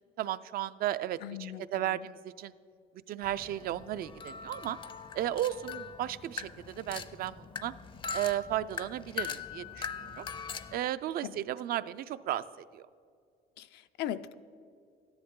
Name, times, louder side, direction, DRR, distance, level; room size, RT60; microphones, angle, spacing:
voice 1, 0.2-2.5 3.1-4.8 5.1-7.7 8.1-10.3 10.7-12.4 12.7-12.9, right 12 dB, 60° right, 14 dB, 0.4 m, -34 dB
voice 2, 1.2-2.1 11.2-11.4 13.6-14.3, left 11 dB, 85° left, 12 dB, 0.5 m, -39 dB
sound 1, 3.2-10.8, left 6 dB, 30° left, 0.5 m, -41 dB
13.0 x 10.5 x 3.7 m, 2.3 s
cardioid pair, 110°, 17 cm